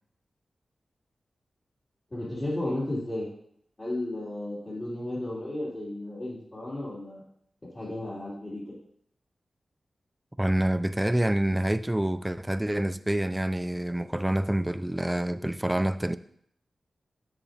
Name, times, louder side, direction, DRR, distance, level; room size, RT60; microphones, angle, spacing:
voice 1, 2.1-3.3 3.8-7.2 7.7-8.6, left 1 dB, 35° left, 3.0 m, -33 dB
voice 2, 10.4-16.2, right 1 dB, 10° right, 0.4 m, -27 dB
7.8 x 6.6 x 2.9 m
cardioid pair, 65°, 0 cm